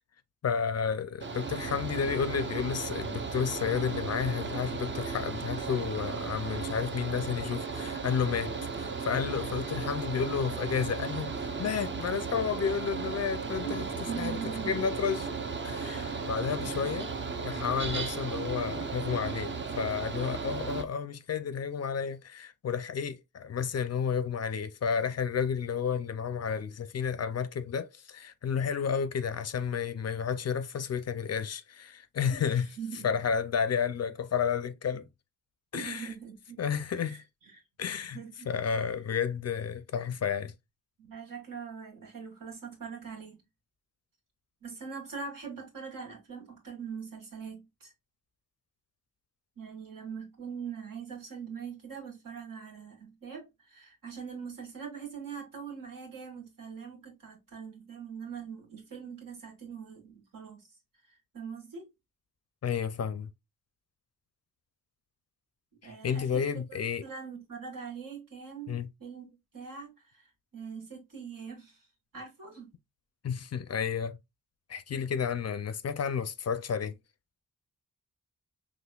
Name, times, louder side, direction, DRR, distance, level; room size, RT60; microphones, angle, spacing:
voice 1, 0.4-13.8 14.2-15.3 15.6-17.1 17.4-32.7 33.0-35.1 35.7-36.1 36.6-37.2 37.8-38.2 38.5-40.5 62.6-63.3 65.8-67.0 68.7-68.9 73.2-74.2 74.7-77.0, left 7 dB, 50° left, 0.4 m, -31 dB
Mechanical fan, 1.2-20.8, right 4 dB, 35° right, 0.6 m, -35 dB
voice 2, 13.6-14.9 15.8-16.7 32.3-33.1 35.7-36.6 36.9-37.2 38.1-38.5 41.0-43.4 44.6-47.9 49.6-60.7 61.3-61.9 65.8-70.3 70.5-71.9 72.1-72.7, right 6 dB, 75° right, 2.0 m, -42 dB
6.0 x 3.0 x 2.3 m
wide cardioid pair, 175°, 34 cm